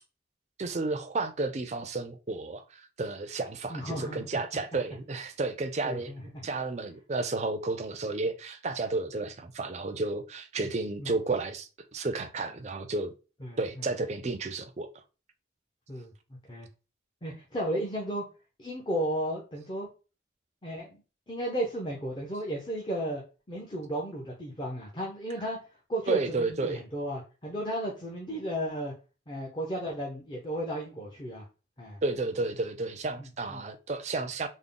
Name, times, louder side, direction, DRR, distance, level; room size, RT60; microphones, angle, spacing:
voice 1, 0.6-13.1 13.6-14.9 26.1-26.8 32.0-34.5, right 3 dB, 35° right, 0.4 m, -32 dB
voice 2, 3.7-4.2 5.8-6.5 10.6-10.7 11.0-11.1 13.4-13.6 15.9-16.1 16.5-16.7 17.2-18.2 18.6-19.9 20.6-21.0 21.3-23.2 23.5-25.6 25.9-28.9 29.3-31.4 31.8-32.0 33.2-33.6, right 1 dB, 25° left, 0.6 m, -34 dB
3.6 x 2.1 x 3.7 m
head